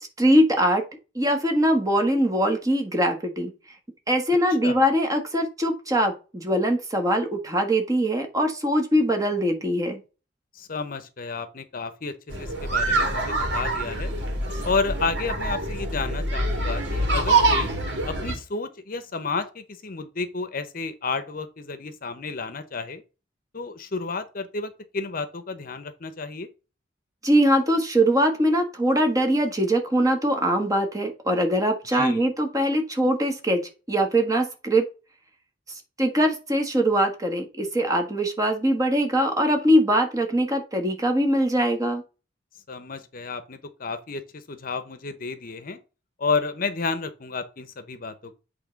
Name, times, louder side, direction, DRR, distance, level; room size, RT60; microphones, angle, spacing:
voice 1, 0.2-0.8 1.1-3.5 4.1-10.0 27.2-33.6 33.9-34.8 36.0-42.0, equal, 20° right, 1.4 m, -22 dB
voice 2, 10.5-14.1 14.6-17.7 18.1-23.0 23.5-26.5 31.9-32.3 42.7-45.8 46.2-48.3, left 4 dB, 50° left, 0.8 m, -31 dB
sound 1, 12.3-18.3, right 2 dB, 70° right, 2.1 m, -25 dB
8.2 x 3.3 x 5.1 m
head